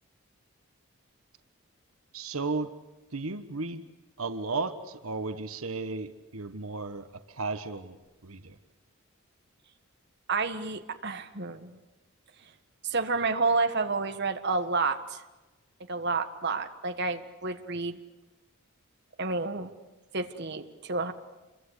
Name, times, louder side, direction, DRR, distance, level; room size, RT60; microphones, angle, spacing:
voice 1, 2.1-2.7 3.1-3.8 4.2-8.0 8.2-8.6, right 3 dB, 85° right, 9 dB, 1.3 m, -34 dB
voice 2, 10.3-11.8 12.8-15.2 15.9-18.0 19.2-19.7 20.1-21.1, right 3 dB, 55° right, 7 dB, 1.6 m, -30 dB
28.5 x 23.5 x 8.2 m, 1.1 s
head